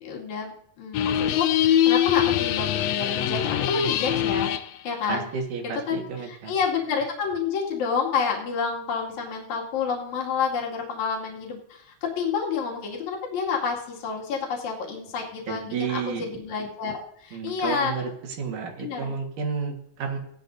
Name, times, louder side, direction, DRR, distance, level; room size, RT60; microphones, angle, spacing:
voice 1, 0.0-4.5 4.8-5.3 5.9-17.9 18.8-19.1, left 6 dB, 60° left, -3 dB, 3.6 m, -29 dB
sound 1, 0.9-4.7, left 10 dB, 90° left, 1.5 m, -23 dB
voice 2, 5.1-6.5 15.5-16.3 17.3-18.1 18.4-20.2, right 6 dB, 70° right, 2 dB, 3.2 m, -31 dB
17.0 x 11.5 x 2.7 m, 0.73 s
omnidirectional pair, 3.9 m